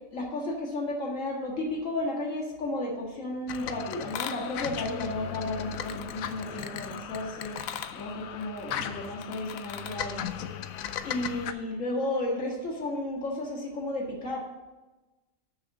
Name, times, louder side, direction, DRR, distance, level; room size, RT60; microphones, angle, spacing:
voice 1, 0.1-7.6 7.9-10.2 11.0-14.4, left 1 dB, 65° left, -2 dB, 2.1 m, -33 dB
sound 1, 3.5-11.5, left 9 dB, 85° left, 1.0 m, -36 dB
6.5 x 6.2 x 7.0 m, 1.1 s
omnidirectional pair, 1.4 m